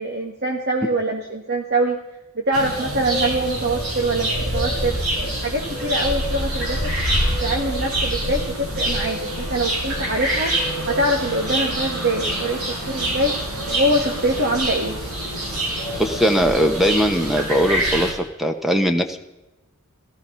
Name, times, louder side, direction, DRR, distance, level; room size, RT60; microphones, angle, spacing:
voice 1, 0.0-2.0 2.3-5.0 5.4-6.9 7.4-13.4 13.7-15.0, right 1 dB, 50° right, 1 dB, 1.7 m, -24 dB
sound 1, 2.5-18.1, right 1 dB, 90° right, 7.0 m, -25 dB
voice 2, 16.0-19.2, equal, ahead, 6 dB, 0.9 m, -20 dB
16.0 x 14.0 x 5.6 m, 1.0 s
head